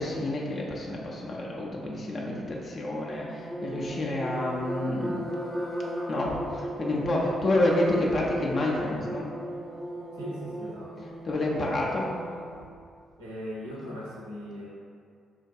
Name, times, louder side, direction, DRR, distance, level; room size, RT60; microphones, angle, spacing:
voice 1, 0.0-5.2 6.1-9.3 11.2-12.1, left 1 dB, 45° left, -3 dB, 0.6 m, -29 dB
sound 1, 3.0-12.6, equal, 10° right, 0.5 m, -36 dB
voice 2, 10.1-11.1 13.2-14.7, left 1 dB, 80° right, -7 dB, 0.6 m, -39 dB
3.8 x 2.5 x 2.3 m, 2.3 s
figure-of-eight pair, 40°, 0 cm